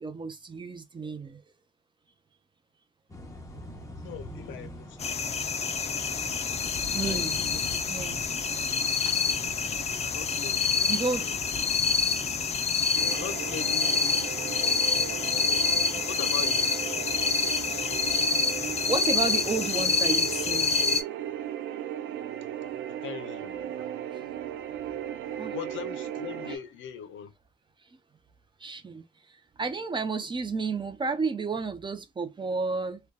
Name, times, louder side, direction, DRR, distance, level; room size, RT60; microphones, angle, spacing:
voice 1, 0.0-1.4 6.9-7.4 7.9-8.2 9.1-9.2 10.9-11.3 18.9-20.7 25.4-25.5 26.5-26.6 28.6-33.0, right 4 dB, 25° right, 0.5 m, -32 dB
sound 1, 3.1-14.2, equal, 15° left, 0.8 m, -44 dB
voice 2, 4.0-5.7 7.0-7.6 10.0-11.4 13.1-15.1 15.4-15.7 16.1-16.7 23.0-23.9 25.5-27.3, left 8 dB, 75° left, 0.5 m, -41 dB
sound 2, 5.0-21.0, left 5 dB, 35° left, 0.5 m, -27 dB
sound 3, 12.9-26.6, right 11 dB, 80° right, 0.4 m, -36 dB
2.6 x 2.2 x 2.2 m
cardioid pair, 90°, 20 cm